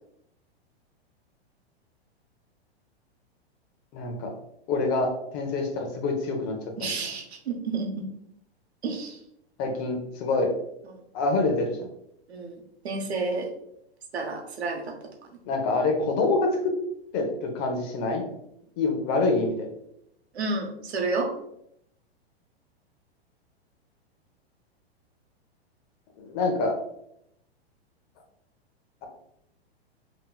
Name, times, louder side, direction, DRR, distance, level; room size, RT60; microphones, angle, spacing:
voice 1, 3.9-4.3 4.7-6.9 9.6-10.5 11.1-11.9 15.5-16.7 17.1-18.2 18.8-19.7 26.2-26.7, left 3 dB, 40° left, 3 dB, 0.9 m, -26 dB
voice 2, 6.8-8.0 8.8-9.2 12.3-12.6 12.8-13.5 14.1-14.9 20.3-21.3, right 3 dB, 80° right, 3 dB, 0.8 m, -30 dB
3.5 x 3.0 x 2.2 m, 0.77 s
hypercardioid pair, 115°, 32 cm